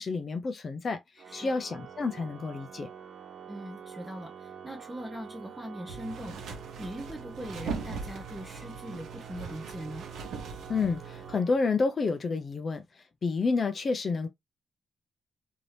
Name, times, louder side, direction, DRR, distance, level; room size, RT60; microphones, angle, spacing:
voice 1, 0.0-2.9 10.7-14.3, left 4 dB, 40° left, 0.4 m, -30 dB
Organ, 1.2-12.1, right 7 dB, 60° right, 0.6 m, -47 dB
voice 2, 3.5-10.1, equal, 10° right, 0.6 m, -41 dB
sound 1, 5.9-11.3, right 5 dB, 90° right, 0.9 m, -40 dB
2.8 x 2.6 x 3.2 m
cardioid pair, 120°, 0 cm